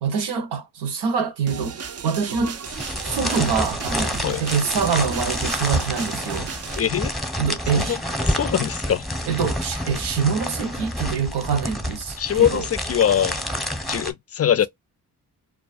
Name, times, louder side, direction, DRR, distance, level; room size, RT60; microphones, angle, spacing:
voice 1, 0.0-1.8 2.0-2.6 3.0-6.5 7.4-8.0 9.3-12.6, right 6 dB, 80° right, 0.9 m, -25 dB
sound 1, 1.5-6.8, right 7 dB, 40° right, 0.5 m, -35 dB
sound 2, 2.6-14.1, equal, ahead, 0.8 m, -28 dB
voice 2, 6.8-7.1 7.7-8.0 8.3-9.1 12.2-13.4 13.9-14.7, left 9 dB, 40° left, 0.4 m, -22 dB
2.3 x 2.3 x 2.3 m
supercardioid pair, 50°, 40 cm